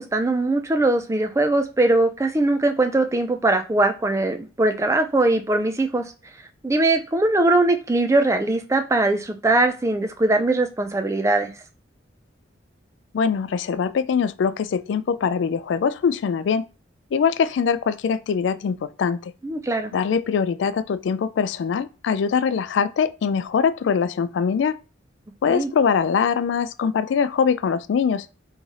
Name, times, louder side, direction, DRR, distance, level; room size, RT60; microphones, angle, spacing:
voice 1, 0.0-6.1 6.6-11.5 19.4-19.9 25.5-25.7, right 2 dB, 15° right, 0.4 m, -21 dB
voice 2, 13.1-16.6 17.1-19.3 19.9-24.8 25.4-28.3, left 6 dB, 70° left, 0.3 m, -22 dB
3.7 x 3.1 x 4.1 m
head